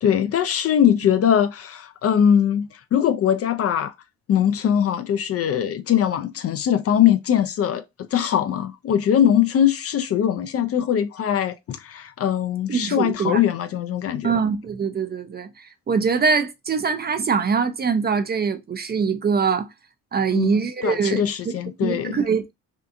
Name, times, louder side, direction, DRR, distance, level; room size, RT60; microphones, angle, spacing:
voice 1, 0.0-3.9 4.3-7.8 8.1-14.3 20.3-20.5 20.8-22.2, left 9 dB, 45° left, 0.4 m, -21 dB
voice 2, 12.7-13.4 14.2-19.7 20.1-21.6 21.8-22.5, right 5 dB, 30° right, 0.4 m, -23 dB
2.7 x 2.3 x 2.5 m
supercardioid pair, 55°, 36 cm